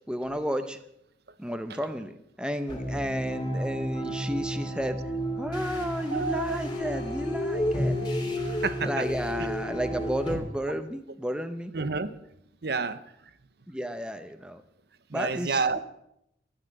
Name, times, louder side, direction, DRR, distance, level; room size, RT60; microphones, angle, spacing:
voice 1, 0.1-0.8 1.4-5.0 5.4-8.0 8.8-11.7 13.7-14.6 15.1-15.6, equal, 5° right, 0.7 m, -32 dB
sound 1, 2.7-10.4, equal, 25° left, 2.7 m, -31 dB
voice 2, 6.1-6.6 8.6-9.1 11.7-12.2 12.6-13.0 15.1-15.8, right 4 dB, 55° right, 0.8 m, -29 dB
13.0 x 9.8 x 7.9 m
head